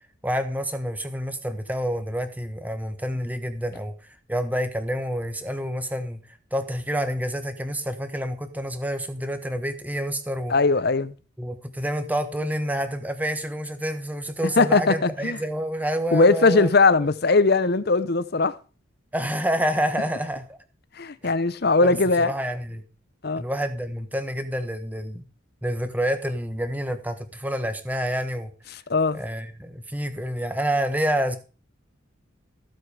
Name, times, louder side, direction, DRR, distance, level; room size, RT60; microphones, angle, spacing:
voice 1, 0.2-3.9 4.3-6.2 6.5-10.5 11.4-16.9 19.1-20.6 21.8-22.8 23.4-25.2 25.6-28.5 29.1-31.4, equal, 10° right, 1.3 m, -28 dB
voice 2, 10.5-11.1 14.6-15.4 16.1-18.5 21.0-22.3 23.2-23.4 28.7-29.2, left 3 dB, 50° left, 0.8 m, -20 dB
14.5 x 7.9 x 4.9 m
head